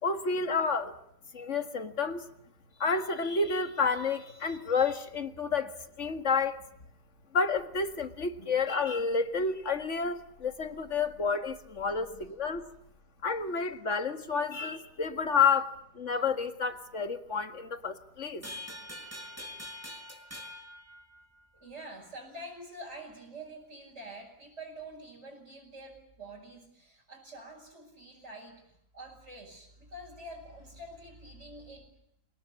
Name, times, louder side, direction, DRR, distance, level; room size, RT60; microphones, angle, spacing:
voice 1, 0.0-0.9 1.3-2.3 2.8-6.6 7.3-12.6 13.2-18.4, left 5 dB, 40° left, 8 dB, 2.1 m, -30 dB
voice 2, 8.4-8.8 10.9-11.1 11.9-12.2 18.4-18.7 21.6-31.9, right 1 dB, 35° right, -5 dB, 7.3 m, -47 dB
sound 1, 18.4-21.7, left 1 dB, 5° right, 6.0 m, -44 dB
28.5 x 19.0 x 9.8 m, 0.78 s
omnidirectional pair, 2.0 m